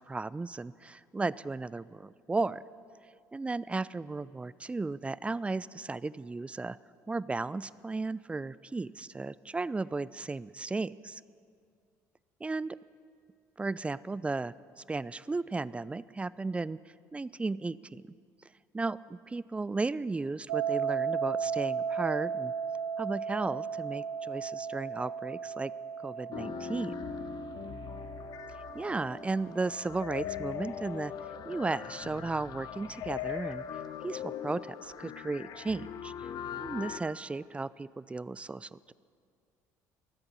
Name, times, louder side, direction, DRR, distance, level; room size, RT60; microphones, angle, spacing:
voice 1, 0.0-2.6 3.3-6.8 7.1-11.2 12.4-12.8 13.6-16.8 17.1-18.0 18.7-22.5 23.0-25.7 26.0-26.9 28.7-31.1 31.4-33.6 34.0-36.3 36.6-38.9, right 3 dB, 15° right, 19 dB, 0.3 m, -35 dB
sound 1, 20.5-31.4, right 6 dB, 85° right, 0.5 m, -36 dB
sound 2, 26.3-37.0, left 9 dB, 55° left, 0.7 m, -40 dB
23.5 x 7.9 x 5.6 m, 2.3 s
hypercardioid pair, 60°, 8 cm